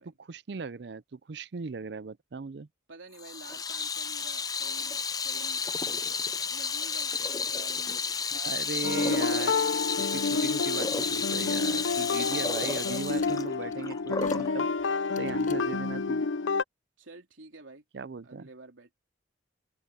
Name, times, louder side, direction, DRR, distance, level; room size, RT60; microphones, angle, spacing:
voice 1, 0.2-2.7 8.3-9.6 10.1-14.7 15.2-16.2 17.9-18.5, right 4 dB, 60° right, 0.5 m, -38 dB
voice 2, 2.9-5.6 6.5-8.1 8.6-8.9 17.0-17.8 18.2-18.9, right 2 dB, 85° right, 3.4 m, -50 dB
Water tap faucet / Sink (filling or washing), 3.2-14.5, left 5 dB, 20° left, 0.5 m, -32 dB
sound 1, 8.8-16.6, left 4 dB, 80° left, 0.6 m, -29 dB
sound 2, 11.1-16.1, left 7 dB, 40° left, 7.3 m, -55 dB
open air
head